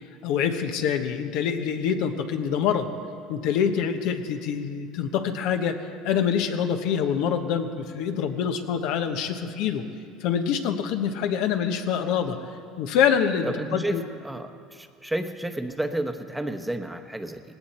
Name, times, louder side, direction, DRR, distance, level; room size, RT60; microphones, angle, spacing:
voice 1, 0.2-2.9 3.3-5.8 6.0-9.8 10.2-12.4 12.8-14.0, left 7 dB, 75° left, 6 dB, 1.1 m, -25 dB
voice 2, 13.6-17.4, right 1 dB, 5° right, 6 dB, 1.0 m, -31 dB
18.0 x 17.0 x 4.3 m, 2.4 s
supercardioid pair, 105°, 0 cm